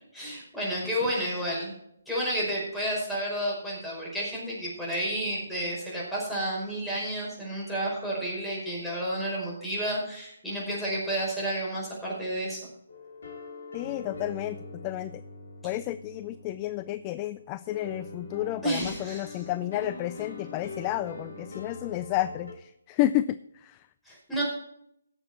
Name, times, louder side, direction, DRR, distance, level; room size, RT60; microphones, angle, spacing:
voice 1, 0.1-1.7 2.1-12.6 18.6-19.4 24.0-24.4, right 1 dB, 5° left, -5 dB, 5.2 m, -31 dB
sound 1, 12.9-22.5, left 2 dB, 55° left, 4.2 m, -43 dB
voice 2, 13.7-15.2 15.6-23.9, left 14 dB, 25° left, 15 dB, 0.4 m, -31 dB
17.5 x 7.2 x 4.2 m, 0.75 s
figure-of-eight pair, 145°, 0 cm